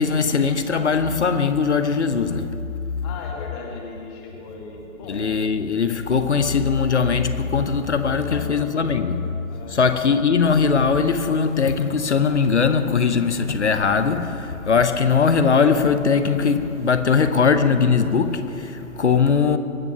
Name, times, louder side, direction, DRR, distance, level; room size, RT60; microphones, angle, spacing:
voice 1, 0.0-2.7 5.1-9.4 9.7-19.6, left 5 dB, 55° left, 1.0 m, -20 dB
voice 2, 3.0-5.2 8.1-9.2 9.5-9.8, left 3 dB, 20° left, 2.2 m, -38 dB
23.0 x 9.3 x 5.9 m
figure-of-eight pair, 140°, 42 cm